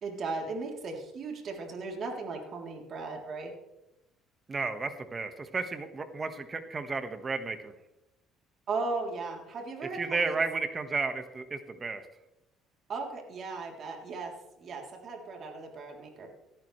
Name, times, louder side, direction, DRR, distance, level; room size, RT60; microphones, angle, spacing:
voice 1, 0.0-3.5 8.7-10.3 12.9-14.3 14.6-16.3, right 3 dB, 50° right, 1 dB, 3.4 m, -37 dB
voice 2, 4.5-7.7 9.9-12.0, right 4 dB, 30° right, 8 dB, 1.6 m, -33 dB
17.5 x 13.5 x 3.3 m, 0.91 s
cardioid pair, 95°, 0 cm